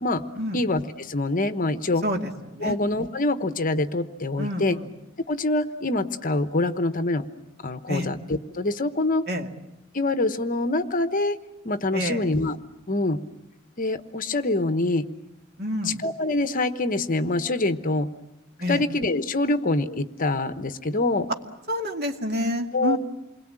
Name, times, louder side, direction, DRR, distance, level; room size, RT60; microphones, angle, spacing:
voice 1, 0.5-2.0 2.6-4.8 5.3-7.2 7.6-9.2 9.9-11.4 11.6-12.6 12.9-13.2 13.8-15.1 16.0-18.1 18.7-21.3 22.7-23.0, left 2 dB, 40° left, 10 dB, 1.1 m, -25 dB
voice 2, 2.0-2.8 4.4-4.9 7.9-8.1 9.3-9.5 11.9-12.3 15.6-16.0 18.6-18.8 21.7-23.0, equal, 50° right, 3 dB, 2.3 m, -28 dB
28.5 x 22.0 x 8.9 m, 0.95 s
head